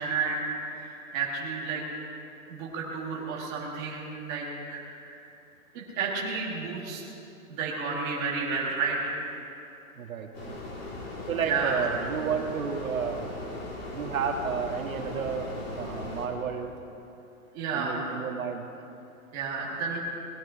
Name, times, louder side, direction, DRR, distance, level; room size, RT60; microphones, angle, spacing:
voice 1, 0.0-1.8 2.5-5.3 5.7-7.0 7.5-9.2 11.4-11.8 17.5-18.1 19.3-20.0, right 4 dB, 15° right, -4 dB, 1.5 m, -31 dB
voice 2, 9.9-10.6 11.3-13.3 13.9-16.7 17.7-18.7, right 6 dB, 70° right, 4 dB, 1.6 m, -32 dB
sound 1, 10.3-16.3, left 2 dB, 45° left, 2.7 m, -38 dB
20.0 x 10.5 x 4.9 m, 2.8 s
hypercardioid pair, 180°, 43 cm